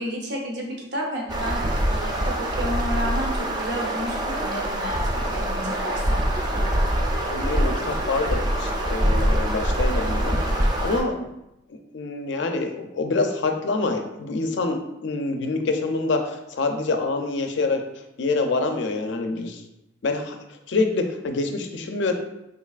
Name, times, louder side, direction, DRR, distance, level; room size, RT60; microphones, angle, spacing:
voice 1, 0.0-6.2, equal, 60° right, -2 dB, 0.7 m, -31 dB
sound 1, 1.3-11.0, right 1 dB, 20° right, 0.3 m, -24 dB
voice 2, 7.3-11.3 11.7-17.8 18.2-19.6 20.0-20.4 20.7-22.1, left 3 dB, 65° left, 5 dB, 0.4 m, -26 dB
3.9 x 3.1 x 2.4 m, 0.88 s
head